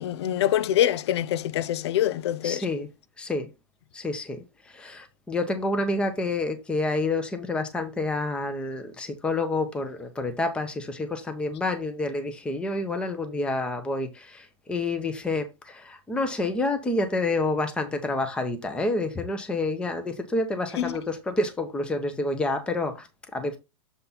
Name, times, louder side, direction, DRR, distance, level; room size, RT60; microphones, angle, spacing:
voice 1, 0.0-2.7 20.7-21.0, left 11 dB, 65° left, 0.6 m, -25 dB
voice 2, 2.4-2.9 3.2-3.5 3.9-23.6, left 2 dB, 5° left, 0.9 m, -28 dB
7.0 x 4.2 x 4.0 m
supercardioid pair, 155°, 15 cm